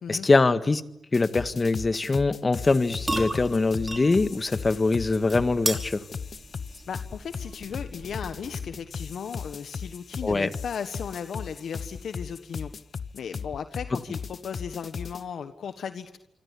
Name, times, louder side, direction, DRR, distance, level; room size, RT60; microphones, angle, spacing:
voice 1, 0.1-0.8 1.1-6.0 10.2-10.5, left 3 dB, 35° left, 11 dB, 1.7 m, -23 dB
sound 1, 1.1-15.2, left 5 dB, 55° left, 1.0 m, -37 dB
sound 2, 2.7-9.1, right 1 dB, 20° right, 5.2 m, -37 dB
voice 2, 6.9-12.7 13.1-16.2, left 7 dB, 75° left, 9 dB, 1.4 m, -36 dB
27.5 x 25.0 x 8.5 m, 0.82 s
cardioid pair, 60°, 0 cm